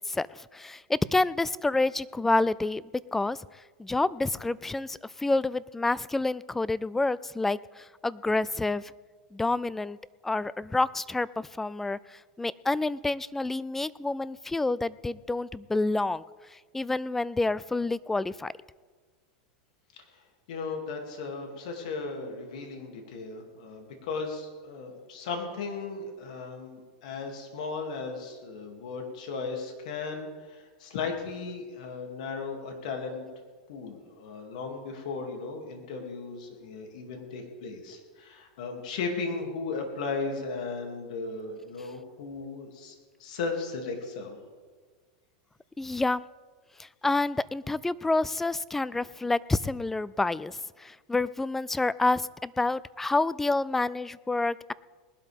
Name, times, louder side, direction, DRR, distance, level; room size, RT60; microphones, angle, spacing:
voice 1, 0.1-2.8 3.1-3.4 3.8-8.9 9.3-10.0 10.2-16.2 16.5-18.5 45.8-46.2 46.8-54.7, left 2 dB, 5° left, 20 dB, 0.3 m, -28 dB
voice 2, 20.5-33.3 33.7-42.9 43.2-44.4, left 4 dB, 75° left, 2 dB, 2.7 m, -36 dB
20.0 x 12.0 x 3.6 m, 1.4 s
supercardioid pair, 130°, 4 cm